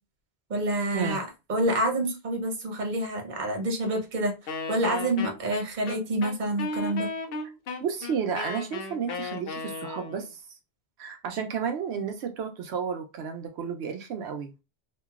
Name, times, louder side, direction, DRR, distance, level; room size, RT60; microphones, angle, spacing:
voice 1, 0.5-1.2 1.5-4.3 4.7-7.1, right 1 dB, 50° right, 0.9 m, -27 dB
Wind instrument woodwind instrument, 4.5-10.3, left 3 dB, 70° left, 0.7 m, -35 dB
voice 2, 7.8-10.4 11.0-14.5, right 6 dB, 85° right, 0.9 m, -32 dB
2.9 x 2.5 x 2.3 m
omnidirectional pair, 1.1 m